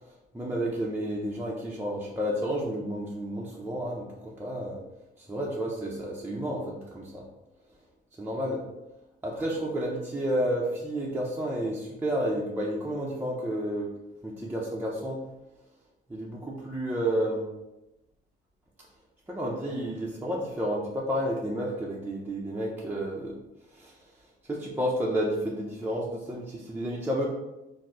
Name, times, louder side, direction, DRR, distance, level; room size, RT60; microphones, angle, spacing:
voice 1, 0.3-4.8 5.2-7.2 8.2-8.6 9.2-13.9 14.2-15.2 16.1-17.5 19.3-23.4 23.7-23.9 24.5-27.3, equal, 10° right, -4 dB, 0.5 m, -31 dB
4.2 x 2.0 x 3.7 m, 0.98 s
cardioid pair, 105°, 21 cm